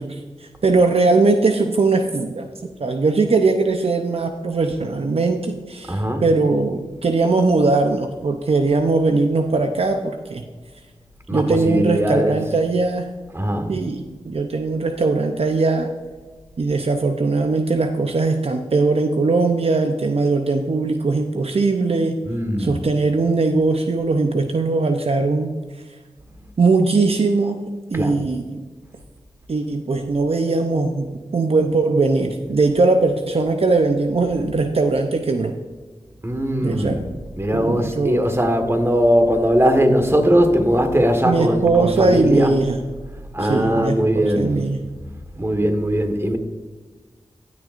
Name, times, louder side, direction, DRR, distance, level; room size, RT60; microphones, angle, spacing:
voice 1, 0.0-2.5 2.8-10.5 11.3-13.1 13.7-15.9 16.6-22.2 22.6-25.6 26.6-27.6 27.9-28.6 29.5-35.6 36.6-37.1 37.5-38.3 41.2-42.8 43.4-44.8, right 3 dB, 60° right, 5 dB, 0.6 m, -20 dB
voice 2, 5.9-6.3 11.3-12.4 13.3-13.7 22.2-22.8 27.9-28.2 36.2-37.0 37.4-42.6 43.3-44.5 45.3-46.4, equal, 20° right, 6 dB, 1.5 m, -19 dB
17.5 x 6.3 x 2.5 m, 1.4 s
cardioid pair, 45°, 11 cm